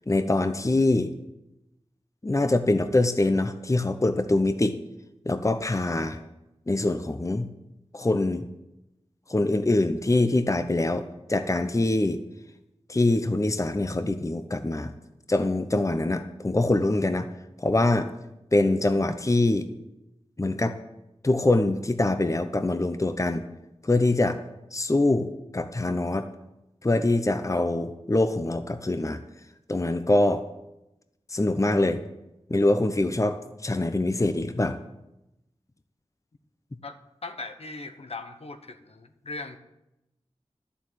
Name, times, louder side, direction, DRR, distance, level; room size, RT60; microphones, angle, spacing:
voice 1, 0.1-1.1 2.2-4.8 5.3-6.2 6.7-7.5 7.9-8.5 9.3-12.2 12.9-14.9 15.3-17.3 17.6-18.1 18.5-19.7 20.4-20.8 21.2-23.4 23.8-24.4 24.7-26.3 26.8-29.2 29.7-30.4 31.3-32.0 32.5-34.8, left 2 dB, 30° left, 9 dB, 0.9 m, -24 dB
voice 2, 36.8-39.6, left 3 dB, 65° left, 8 dB, 1.2 m, -39 dB
12.0 x 7.1 x 9.2 m, 0.91 s
wide cardioid pair, 55°, 11 cm